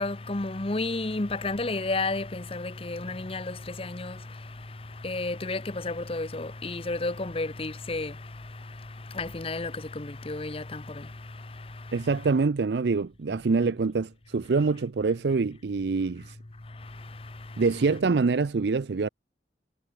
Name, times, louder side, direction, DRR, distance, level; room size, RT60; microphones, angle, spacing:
voice 1, 0.0-4.4 5.0-8.3 9.1-11.1 11.6-11.7, left 2 dB, 30° left, 0.9 m, -32 dB
voice 2, 11.9-16.4 17.6-19.1, right 4 dB, 75° right, 0.5 m, -25 dB
head